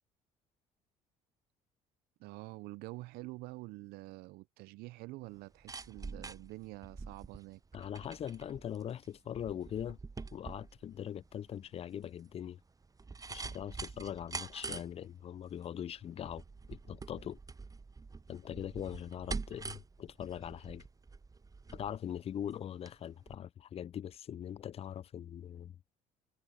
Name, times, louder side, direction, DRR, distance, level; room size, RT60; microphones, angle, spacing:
voice 1, 2.2-7.6, right 21 dB, 70° right, 0.6 m, -47 dB
sound 1, 5.3-23.0 23.3-23.4, right 4 dB, 20° right, 0.9 m, -46 dB
voice 2, 7.7-10.0 10.3-12.6 13.3-16.4 16.7-17.4 18.3-20.8 21.7-25.8, left 9 dB, 35° left, 0.4 m, -41 dB
hypercardioid pair, 60°, 17 cm